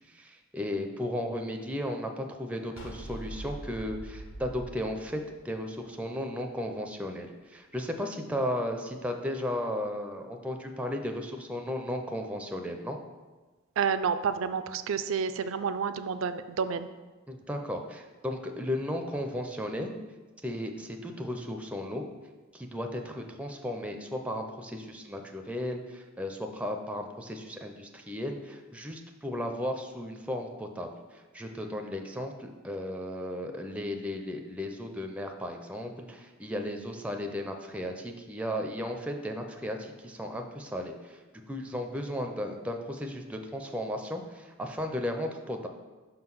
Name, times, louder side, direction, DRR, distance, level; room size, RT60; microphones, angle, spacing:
voice 1, 0.1-13.0 17.3-19.9 20.4-22.0 22.5-41.2 41.5-45.7, left 1 dB, 5° right, 4 dB, 0.4 m, -35 dB
sound 1, 2.8-6.0, right 1 dB, 65° left, 1.7 m, -43 dB
voice 2, 13.8-16.9, right 6 dB, 70° right, 11 dB, 0.4 m, -29 dB
5.7 x 3.8 x 5.9 m, 1.3 s
head